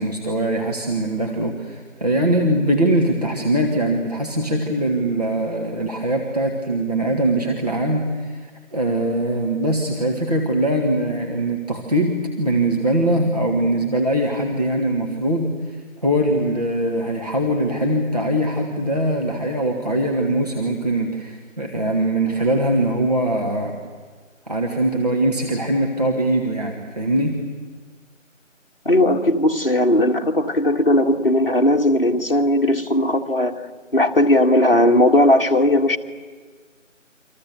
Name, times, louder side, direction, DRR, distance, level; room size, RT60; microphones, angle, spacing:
voice 1, 0.0-23.8 24.5-27.4, right 1 dB, 30° right, 0 dB, 1.6 m, -22 dB
voice 2, 28.8-33.6 33.9-36.0, left 1 dB, 45° left, 2 dB, 1.7 m, -17 dB
29.0 x 25.5 x 6.8 m, 1.5 s
figure-of-eight pair, 170°, 39 cm